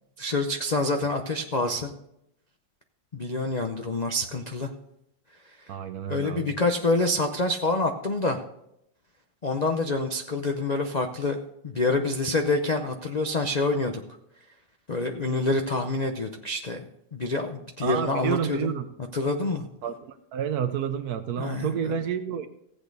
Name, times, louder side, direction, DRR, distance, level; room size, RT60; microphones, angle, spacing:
voice 1, 0.2-1.9 3.1-4.7 6.1-8.4 9.4-11.4 11.6-14.0 14.9-16.8 17.1-18.7 19.1-19.7 21.4-21.9, left 2 dB, 80° left, 4 dB, 0.3 m, -27 dB
voice 2, 5.7-6.5 17.8-18.9 19.8-22.5, right 8 dB, 65° right, 9 dB, 1.2 m, -29 dB
15.5 x 8.5 x 4.0 m, 0.78 s
omnidirectional pair, 2.0 m